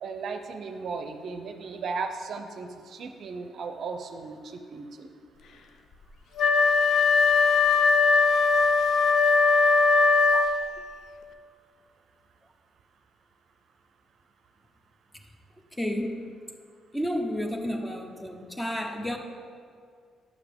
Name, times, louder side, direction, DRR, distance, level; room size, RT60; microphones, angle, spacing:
voice 1, 0.0-5.1, right 4 dB, 65° right, 6 dB, 0.5 m, -36 dB
Wind instrument woodwind instrument, 6.4-10.8, left 4 dB, 70° left, 0.5 m, -20 dB
voice 2, 15.8-16.4 16.9-19.2, equal, 10° left, 4 dB, 0.9 m, -31 dB
9.0 x 5.7 x 3.6 m, 2.1 s
supercardioid pair, 70°, 0 cm